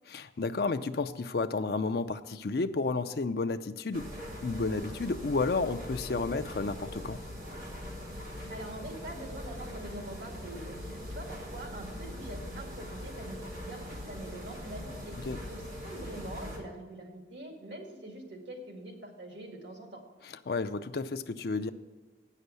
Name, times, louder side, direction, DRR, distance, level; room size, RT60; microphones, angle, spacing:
voice 1, 0.1-4.1 4.4-7.2 15.2-15.4 20.2-21.7, left 3 dB, 55° left, 9 dB, 0.5 m, -31 dB
sound 1, 3.9-16.6, equal, 50° right, 2.4 m, -41 dB
voice 2, 8.5-15.2 15.5-20.0, right 1 dB, 85° right, 2 dB, 2.0 m, -44 dB
9.0 x 6.6 x 8.1 m, 1.3 s
head